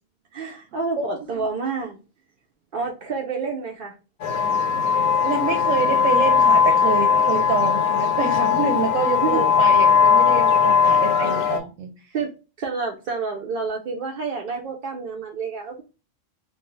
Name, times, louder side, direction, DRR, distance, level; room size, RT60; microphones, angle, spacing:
voice 1, 0.3-2.0 2.7-3.9 9.2-9.4 11.0-11.5 12.1-12.3 12.6-15.8, right 4 dB, 60° right, 1 dB, 0.5 m, -29 dB
sound 1, 4.2-11.6, left 6 dB, 90° left, 1.0 m, -19 dB
voice 2, 5.2-12.1, right 6 dB, 90° right, 4 dB, 1.0 m, -27 dB
2.6 x 2.2 x 2.9 m, 0.31 s
omnidirectional pair, 1.3 m